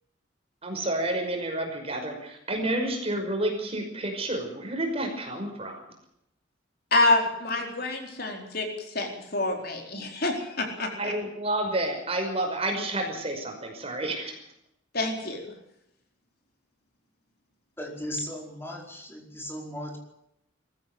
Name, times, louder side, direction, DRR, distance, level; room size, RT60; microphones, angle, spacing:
voice 1, 0.6-5.8 10.8-14.4, right 1 dB, 30° right, 3 dB, 5.6 m, -30 dB
voice 2, 6.9-11.1 14.9-15.4, left 2 dB, 50° left, 2 dB, 4.3 m, -27 dB
voice 3, 17.8-20.0, equal, 10° left, 0 dB, 4.8 m, -36 dB
21.5 x 15.0 x 8.1 m, 0.78 s
head